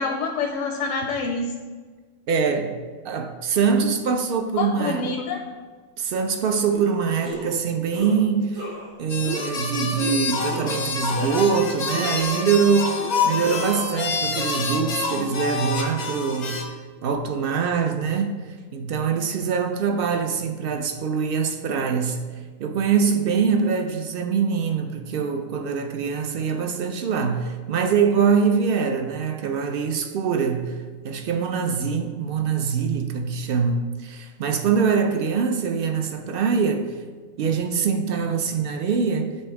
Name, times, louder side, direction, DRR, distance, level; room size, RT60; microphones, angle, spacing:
voice 1, 0.0-1.4 4.6-5.4, left 4 dB, 80° left, 1.0 m, -26 dB
voice 2, 2.3-2.8 3.0-5.1 6.0-8.7 9.0-16.6 17.0-18.4 18.7-22.2 22.6-30.8 31.0-36.9 37.4-39.3, right 6 dB, 60° right, 0.6 m, -23 dB
sound 1, 6.7-6.9 7.2-7.6 7.9-8.2 8.5-8.9 9.2-9.5 10.0-10.1 10.4-11.6 11.9-12.5 13.0-13.9, right 2 dB, 90° right, 2.2 m, -34 dB
sound 2, 9.1-16.6, left 4 dB, 45° left, 0.6 m, -27 dB
6.9 x 3.4 x 4.7 m
omnidirectional pair, 1.4 m